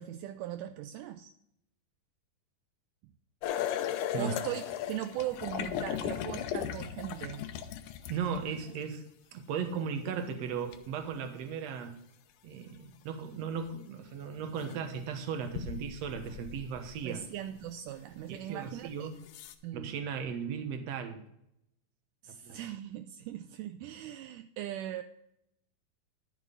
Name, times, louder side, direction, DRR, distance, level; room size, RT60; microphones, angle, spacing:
voice 1, 0.0-1.3 4.2-7.5 17.0-19.1 19.6-19.9 22.2-25.0, right 12 dB, 85° right, 8 dB, 1.8 m, -39 dB
sound 1, 3.4-8.7 10.7-10.8 13.7-13.8 14.5-14.8 15.5-17.2 17.6-17.7 18.6-18.7 19.2-19.5, left 10 dB, 75° left, 2.0 m, -36 dB
voice 2, 8.0-9.0 9.3-12.0 12.4-17.2 18.3-19.2 19.7-21.2 22.3-22.6, right 6 dB, 60° right, 6 dB, 1.9 m, -36 dB
12.0 x 7.3 x 3.9 m, 0.80 s
omnidirectional pair, 4.1 m